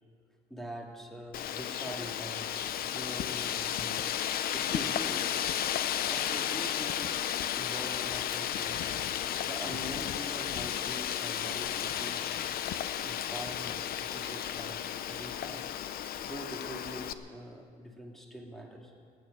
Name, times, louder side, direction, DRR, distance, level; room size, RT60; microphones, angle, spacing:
voice 1, 0.5-4.0 4.5-5.3 6.0-7.2 7.6-8.9 9.4-12.4 13.0-15.7 16.2-18.9, equal, ahead, 0 dB, 2.5 m, -44 dB
Wind, 1.3-17.1, left 10 dB, 60° left, 0.7 m, -33 dB
16.0 x 9.3 x 9.1 m, 2.1 s
cardioid pair, 110°, 17 cm